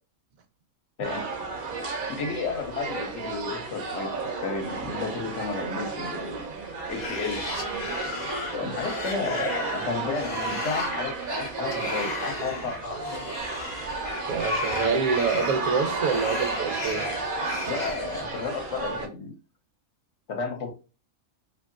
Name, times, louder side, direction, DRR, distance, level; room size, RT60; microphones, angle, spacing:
sound 1, 1.0-19.1, right 3 dB, 60° right, 0.5 m, -32 dB
voice 1, 2.1-6.5 6.9-7.4 8.5-13.2 17.7-19.3 20.3-20.7, left 4 dB, 65° left, 0.9 m, -32 dB
sound 2, 6.7-18.8, left 4 dB, 90° left, 0.3 m, -37 dB
voice 2, 14.3-17.1, right 5 dB, 80° right, 1.0 m, -26 dB
2.7 x 2.5 x 2.5 m
omnidirectional pair, 1.5 m